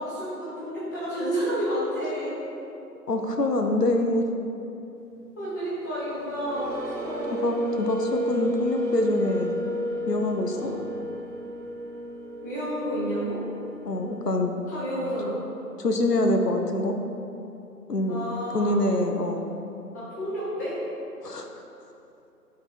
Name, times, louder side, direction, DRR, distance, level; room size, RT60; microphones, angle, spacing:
voice 1, 0.0-2.3 5.4-7.4 10.5-10.8 12.4-13.4 14.7-15.4 18.1-18.8 19.9-20.8, equal, 10° left, -10 dB, 1.1 m, -30 dB
voice 2, 3.1-4.2 7.4-9.6 10.1-10.7 13.8-14.5 15.8-17.0 17.9-18.2 18.5-19.5 21.2-21.5, left 1 dB, 75° left, 4 dB, 0.9 m, -25 dB
sound 1, 5.9-14.3, equal, 50° right, 0.9 m, -32 dB
11.5 x 4.2 x 4.2 m, 2.8 s
figure-of-eight pair, 150°, 48 cm